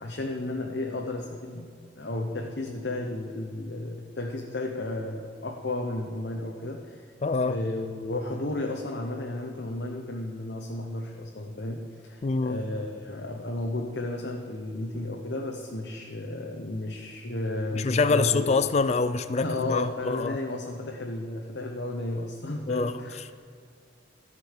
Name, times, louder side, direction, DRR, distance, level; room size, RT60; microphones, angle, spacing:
voice 1, 0.0-7.0 7.4-18.5 19.4-23.3, left 2 dB, 60° left, 1 dB, 0.9 m, -33 dB
voice 2, 7.2-7.6 12.2-12.6 17.7-20.4 22.7-23.0, left 4 dB, 35° left, 12 dB, 0.4 m, -25 dB
13.0 x 5.5 x 7.3 m, 2.3 s
head